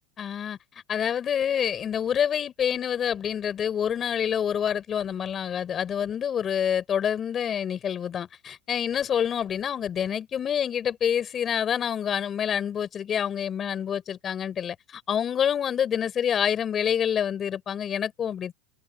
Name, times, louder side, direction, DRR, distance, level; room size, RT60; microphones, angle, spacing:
voice 1, 0.2-0.6 0.9-18.5, left 8 dB, 30° left, 5.3 m, -27 dB
hypercardioid pair, 105°, 0 cm